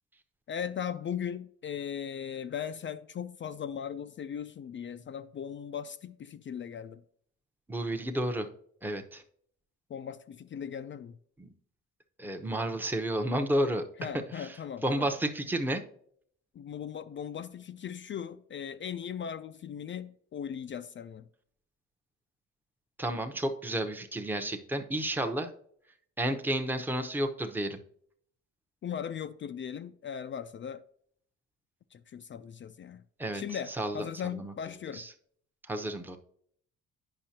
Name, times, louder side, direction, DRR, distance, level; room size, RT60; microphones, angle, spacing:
voice 1, 0.5-7.0 9.9-11.2 14.0-15.1 16.5-21.3 28.8-30.8 31.9-33.0 33.3-35.0, left 8 dB, 40° left, 0.4 m, -38 dB
voice 2, 7.7-8.5 8.8-9.2 11.4-11.5 12.2-13.8 14.1-14.6 14.8-15.8 23.0-25.5 26.2-27.8 33.2-33.4 33.7-34.0 34.3-34.5 34.9-35.1 35.7-36.2, right 1 dB, 5° right, 0.8 m, -31 dB
8.7 x 5.5 x 2.8 m
cardioid pair, 90°, 30 cm